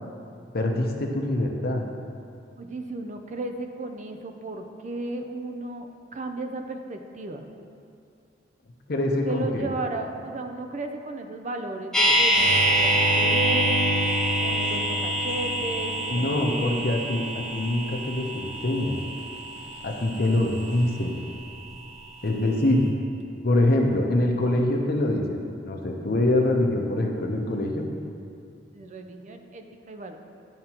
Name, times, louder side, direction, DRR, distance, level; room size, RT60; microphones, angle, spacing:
voice 1, 0.5-1.8 8.9-9.7 16.1-17.2 17.5-19.0 19.8-21.2 22.2-22.8 23.4-27.9, left 1 dB, 60° left, 2 dB, 0.8 m, -24 dB
voice 2, 2.6-7.4 9.2-13.9 14.4-16.9 22.2-22.7 28.7-30.2, right 2 dB, 45° right, 5 dB, 0.5 m, -35 dB
sound 1, 11.9-22.0 22.3-22.4, right 1 dB, 5° left, 0.9 m, -26 dB
sound 2, 12.3-16.9 20.2-20.7, left 2 dB, 85° left, 1.0 m, -31 dB
11.0 x 5.0 x 2.9 m, 2.4 s
head